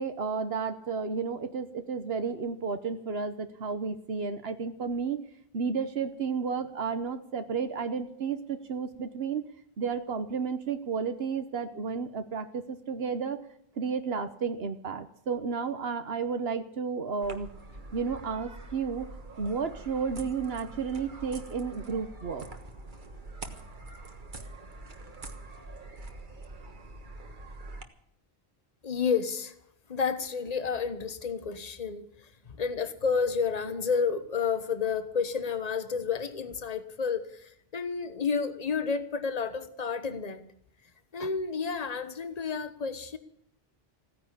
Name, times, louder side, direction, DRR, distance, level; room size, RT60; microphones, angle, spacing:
voice 1, 0.0-5.2 5.5-9.5 9.8-13.4 13.8-17.5 17.9-19.1 19.4-22.5, right 5 dB, 75° right, 9 dB, 1.3 m, -32 dB
sound 1, 17.2-27.8, right 2 dB, 50° right, 1.6 m, -44 dB
voice 2, 28.8-29.5 29.9-32.3 32.6-40.5 41.1-43.2, left 5 dB, 40° left, 11 dB, 1.2 m, -30 dB
16.0 x 10.0 x 8.4 m, 0.71 s
omnidirectional pair, 1.0 m